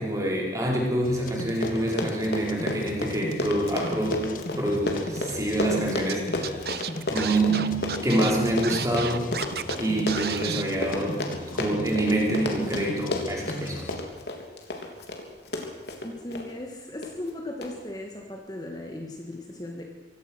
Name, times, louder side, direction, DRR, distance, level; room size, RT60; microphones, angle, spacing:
voice 1, 0.0-6.6 7.1-9.3 9.8-11.2 11.5-13.9, right 1 dB, 20° right, -1 dB, 4.9 m, -26 dB
sound 1, 1.0-14.0, left 1 dB, 50° left, 1.6 m, -37 dB
Run, 1.2-1.3 1.5-16.5 17.0-17.3 17.6-17.7, left 2 dB, 70° left, 3.4 m, -32 dB
Scratching (performance technique), 6.1-6.2 6.4-9.8 10.1-10.6, right 8 dB, 60° right, 0.9 m, -32 dB
voice 2, 16.0-19.8, left 1 dB, 20° left, 2 dB, 1.9 m, -37 dB
25.5 x 16.5 x 6.4 m, 1.2 s
head